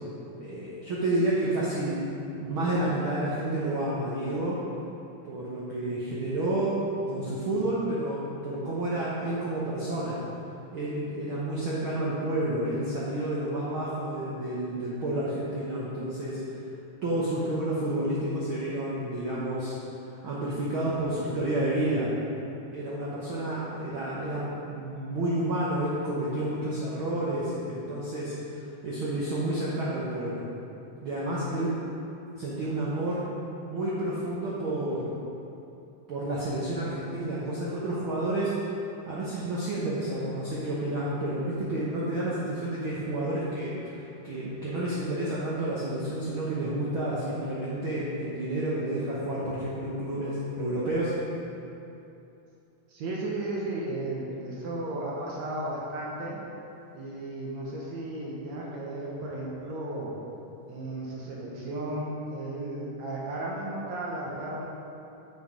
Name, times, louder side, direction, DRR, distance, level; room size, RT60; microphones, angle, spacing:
voice 1, 0.4-2.0 2.3-4.6 5.2-6.8 7.0-10.2 10.7-16.4 17.0-19.8 20.1-22.1 22.7-30.5 31.0-31.7 32.4-33.2 33.6-35.1 36.1-38.5 39.1-51.1, right 1 dB, 85° right, -7 dB, 1.1 m, -30 dB
voice 2, 52.9-56.4 56.9-60.1 60.7-64.7, right 1 dB, 65° right, -4 dB, 2.0 m, -34 dB
6.9 x 6.4 x 5.0 m, 2.8 s
omnidirectional pair, 3.8 m